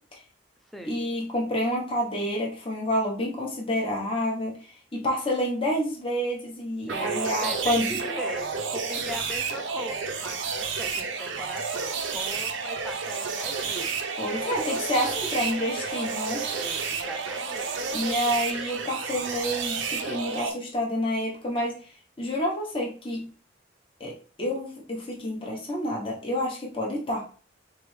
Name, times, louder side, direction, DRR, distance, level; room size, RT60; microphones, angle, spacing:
voice 1, 0.8-7.9 14.2-16.4 17.9-21.8 22.2-23.3 24.0-27.2, equal, 30° left, -2 dB, 1.0 m, -29 dB
voice 2, 6.9-14.0 16.4-17.9, equal, ahead, 4 dB, 0.5 m, -40 dB
sound 1, 6.9-20.5, right 5 dB, 85° right, 0.7 m, -31 dB
4.3 x 3.4 x 3.2 m, 0.41 s
head